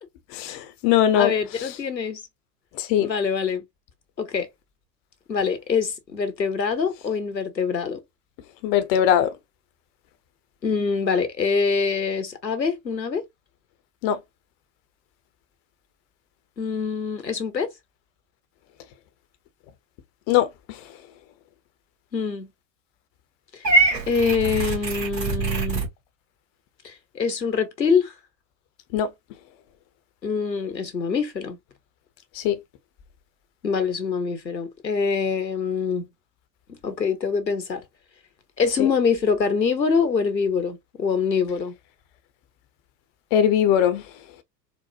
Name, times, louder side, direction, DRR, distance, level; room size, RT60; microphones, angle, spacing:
voice 1, 0.3-1.7 2.7-3.1 8.6-9.3 14.0-14.2 20.3-20.8 28.9-29.1 32.3-32.6 38.8-38.9 43.3-44.0, left 10 dB, 30° left, 0.5 m, -21 dB
voice 2, 1.1-2.2 3.0-3.6 4.2-4.5 5.3-8.0 10.6-13.2 16.6-17.7 22.1-22.5 23.5-23.6 24.1-25.9 26.8-28.1 30.2-31.6 33.6-36.0 36.7-37.8 38.6-41.7, left 5 dB, 90° left, 0.8 m, -24 dB
Purr / Meow, 23.6-25.9, right 3 dB, 80° right, 1.3 m, -23 dB
4.2 x 2.1 x 2.4 m
figure-of-eight pair, 85°, 49 cm